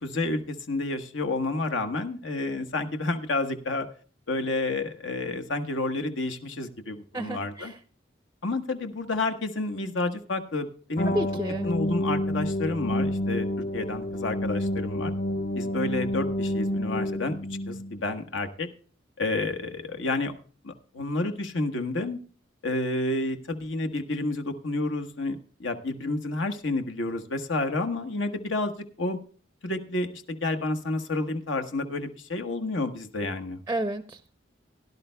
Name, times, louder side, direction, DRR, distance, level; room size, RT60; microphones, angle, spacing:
voice 1, 0.0-3.9 4.3-7.7 8.4-11.2 11.6-13.5 13.7-15.1 15.5-17.4 17.7-18.7 19.2-20.3 20.6-22.2 22.6-28.7 29.0-29.2 29.6-33.6, left 2 dB, 80° left, 6 dB, 1.2 m, -30 dB
voice 2, 7.1-7.8 11.1-11.7 33.7-34.3, right 1 dB, 15° right, 10 dB, 0.5 m, -31 dB
sound 1, 11.0-18.0, left 1 dB, 40° left, 0.6 m, -29 dB
17.5 x 11.5 x 2.2 m, 0.42 s
head